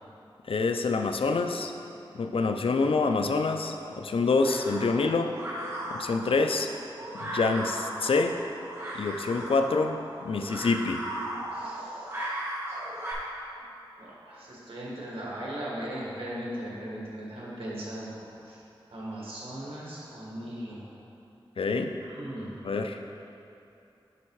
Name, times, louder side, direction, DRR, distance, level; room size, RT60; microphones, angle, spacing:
voice 1, 0.5-1.7 2.1-5.4 5.9-6.7 7.1-8.4 8.9-11.0 21.6-21.9 22.6-23.0, left 3 dB, 80° left, 6 dB, 0.4 m, -26 dB
sound 1, 3.3-13.1, right 1 dB, 30° right, 1.4 m, -37 dB
voice 2, 11.5-12.1 14.0-18.1 18.4-18.6 18.9-20.9 22.0-22.6, right 1 dB, 90° right, -6 dB, 1.6 m, -38 dB
10.0 x 3.5 x 4.6 m, 2.7 s
wide cardioid pair, 70°, 9 cm